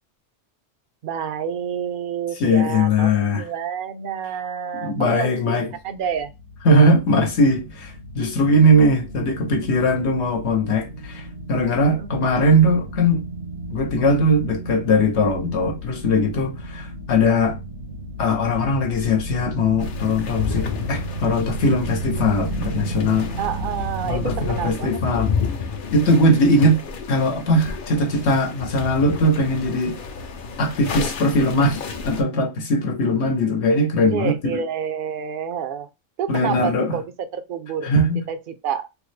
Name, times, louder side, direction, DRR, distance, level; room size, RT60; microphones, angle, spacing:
voice 1, 1.0-6.3 11.9-12.1 23.4-25.2 26.1-26.2 34.1-35.9 36.2-37.9 38.3-38.9, right 7 dB, 60° right, 0.6 m, -29 dB
voice 2, 2.4-3.4 4.8-5.7 6.6-13.2 13.7-17.6 18.2-23.3 24.0-25.3 25.9-26.8 27.1-30.0 30.6-34.3 36.3-37.0 37.8-38.2, left 1 dB, 70° left, 1.0 m, -20 dB
sound 1, 5.7-24.6, right 1 dB, 80° right, 1.9 m, -33 dB
sound 2, 19.8-32.2, left 5 dB, 55° left, 0.7 m, -31 dB
3.4 x 2.0 x 3.1 m
omnidirectional pair, 1.2 m